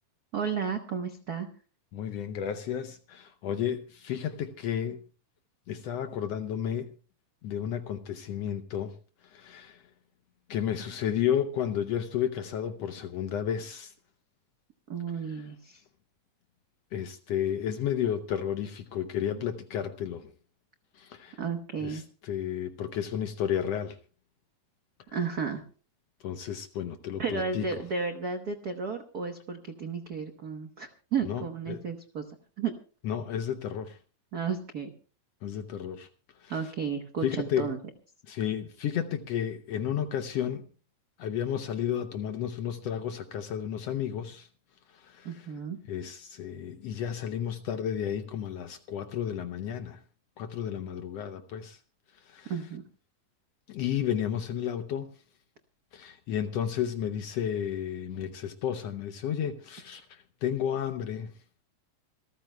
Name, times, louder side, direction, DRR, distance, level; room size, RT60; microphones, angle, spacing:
voice 1, 0.3-1.5 14.9-15.8 21.4-22.0 25.1-25.6 27.2-32.7 34.3-34.9 36.5-37.8 45.2-45.8 52.5-52.8, right 6 dB, 90° right, 0.8 m, -33 dB
voice 2, 1.9-5.0 5.7-6.9 7.4-8.9 9.2-9.8 10.5-13.9 15.4-15.5 16.9-20.3 20.9-21.4 21.8-24.0 26.2-27.6 31.3-31.8 33.0-34.0 35.4-36.1 36.4-36.7 37.2-37.7 38.3-40.7 41.2-44.5 44.9-45.5 45.9-50.0 50.4-51.8 52.1-52.5 53.7-55.1 55.9-61.4, left 9 dB, 70° left, 1.7 m, -32 dB
26.5 x 14.0 x 2.2 m
omnidirectional pair, 3.3 m